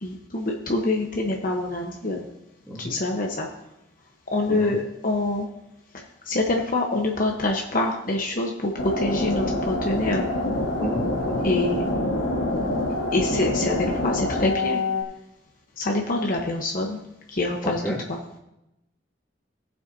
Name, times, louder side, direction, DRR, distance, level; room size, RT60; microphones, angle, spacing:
voice 1, 0.0-2.2 2.8-3.5 4.3-5.5 6.3-10.3 11.4-11.9 13.1-14.8 15.8-17.0 17.3-17.8 18.1-18.2, left 2 dB, 50° left, 0 dB, 1.1 m, -25 dB
voice 2, 2.7-3.0 4.5-4.8 10.8-11.5 17.6-18.0, left 1 dB, 5° left, -5 dB, 2.3 m, -32 dB
sound 1, 8.8-15.0, left 1 dB, 85° left, 2.2 m, -26 dB
18.0 x 7.0 x 2.8 m, 0.88 s
head